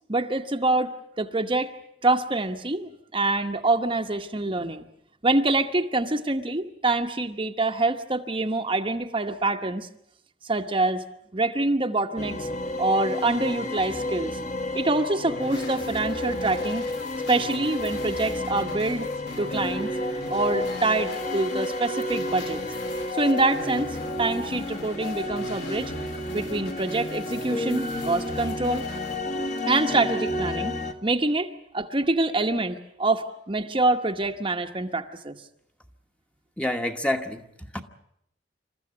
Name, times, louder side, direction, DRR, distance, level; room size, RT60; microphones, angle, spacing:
voice 1, 0.1-0.9 1.2-1.7 2.0-4.9 5.2-9.9 10.4-11.0 11.3-12.5 12.8-14.4 14.7-16.9 17.3-19.1 19.4-19.9 20.3-22.6 23.1-25.9 26.3-28.8 29.7-30.8 31.0-31.5 31.7-35.4, right 2 dB, 25° right, 5 dB, 1.0 m, -25 dB
sound 1, 12.2-30.9, left 1 dB, 40° left, 1.6 m, -31 dB
sound 2, 15.4-29.2, left 3 dB, 70° left, 5.3 m, -44 dB
voice 2, 36.6-37.8, left 1 dB, 5° left, 5 dB, 1.2 m, -28 dB
27.0 x 14.0 x 9.7 m, 0.75 s
head